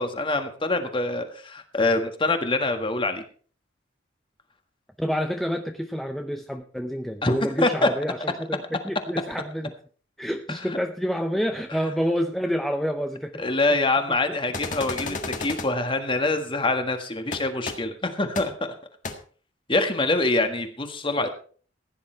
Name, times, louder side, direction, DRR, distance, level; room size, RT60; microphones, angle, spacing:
voice 1, 0.0-3.2 7.2-7.9 10.5-10.8 13.4-18.7 19.7-21.3, left 2 dB, 25° left, 7 dB, 1.6 m, -25 dB
voice 2, 5.0-9.7 10.2-13.4 15.0-15.2, equal, ahead, 5 dB, 0.6 m, -28 dB
sound 1, 14.5-15.7 17.3-17.4 17.7-17.8 18.4-18.5 19.0-19.1, left 3 dB, 40° left, 1.7 m, -31 dB
15.5 x 10.0 x 4.5 m, 0.44 s
head